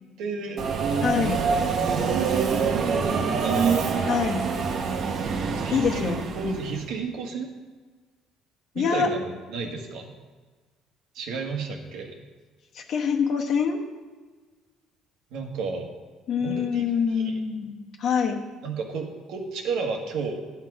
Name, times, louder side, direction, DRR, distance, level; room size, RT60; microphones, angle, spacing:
voice 1, 0.2-0.6 1.9-3.9 5.4-7.5 8.7-10.1 11.1-12.1 15.3-15.9 16.4-17.4 18.6-20.6, right 4 dB, 75° right, 3 dB, 1.4 m, -32 dB
Subway metro underground, 0.6-6.8, right 5 dB, 50° right, 0.9 m, -25 dB
voice 2, 1.0-1.4 4.1-4.4 5.7-6.6 8.7-9.1 12.7-13.8 16.3-18.4, left 6 dB, 55° left, 3 dB, 1.1 m, -25 dB
10.5 x 5.8 x 4.7 m, 1.4 s
cardioid pair, 125°, 0 cm